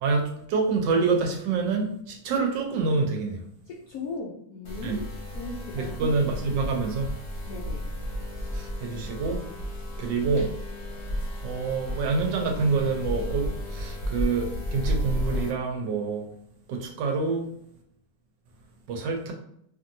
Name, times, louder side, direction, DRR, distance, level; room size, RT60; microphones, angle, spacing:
voice 1, 0.0-3.4 4.8-5.0 5.7-7.1 8.5-9.4 10.0-10.5 11.4-16.3 16.7-17.5 18.9-19.3, right 4 dB, 75° right, 2 dB, 1.2 m, -27 dB
voice 2, 3.7-5.0 5.3-6.0 7.4-7.9, left 3 dB, 80° left, -3 dB, 0.8 m, -37 dB
sound 1, 4.7-15.5, equal, 40° left, 0.8 m, -33 dB
2.9 x 2.6 x 2.6 m, 0.70 s
omnidirectional pair, 2.1 m